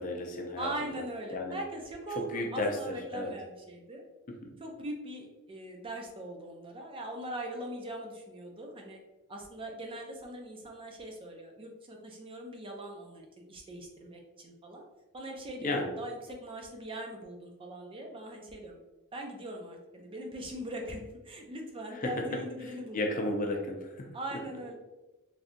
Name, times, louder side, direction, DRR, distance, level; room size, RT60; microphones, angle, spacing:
voice 1, 0.0-0.9 1.3-1.6 2.1-3.3 4.3-4.5 15.6-15.9 21.9-22.3 22.6-24.1, left 2 dB, 40° left, 2 dB, 0.4 m, -34 dB
voice 2, 0.6-4.0 4.6-9.0 9.3-14.8 15.1-18.8 19.1-23.2 24.1-24.7, right 1 dB, 25° right, 1 dB, 0.4 m, -41 dB
3.2 x 2.7 x 2.5 m, 1.1 s
head